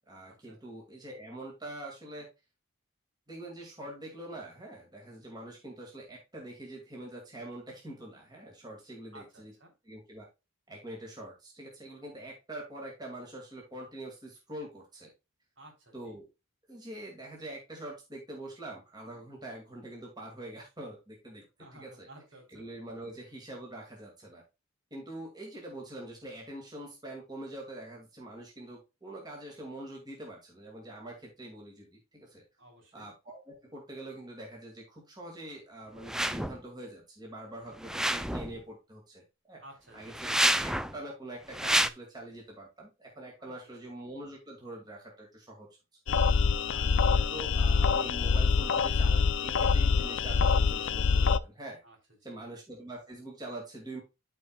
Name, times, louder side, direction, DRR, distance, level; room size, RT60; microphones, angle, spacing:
voice 1, 0.1-2.3 3.3-9.5 9.8-10.3 10.7-15.1 15.9-16.3 16.7-21.4 21.7-22.1 22.5-24.4 24.9-32.4 32.9-39.6 39.9-45.7 46.6-51.8 52.2-54.0, right 1 dB, 20° right, -2 dB, 2.1 m, -44 dB
voice 2, 9.1-9.7 15.6-16.1 21.6-22.7 32.6-33.1 39.6-40.2 43.4-43.5 51.8-52.0 52.2-52.4, right 1 dB, 60° right, 1 dB, 3.3 m, -54 dB
sound 1, 36.0-36.6 37.8-38.6 40.1-41.0 41.5-41.9, right 1 dB, 5° right, 0.3 m, -28 dB
sound 2, 46.1-51.4, left 5 dB, 60° left, 0.5 m, -25 dB
13.5 x 4.6 x 2.3 m, 0.26 s
head